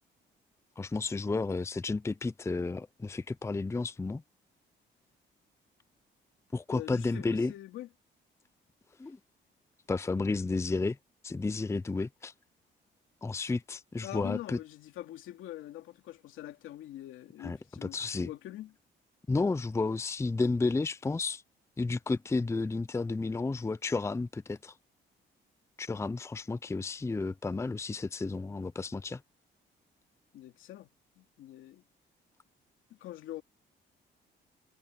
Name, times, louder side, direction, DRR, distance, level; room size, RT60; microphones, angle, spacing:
voice 1, 0.8-4.2 6.5-7.5 9.0-9.2 9.9-11.0 11.2-12.3 13.2-14.6 17.4-18.3 19.3-21.4 21.8-24.7 25.8-29.2, left 3 dB, 15° left, 0.5 m, -32 dB
voice 2, 6.7-7.9 14.0-18.7 30.3-30.9 31.2-31.8 32.9-33.4, left 14 dB, 85° left, 2.7 m, -44 dB
cardioid pair, 90°, 20 cm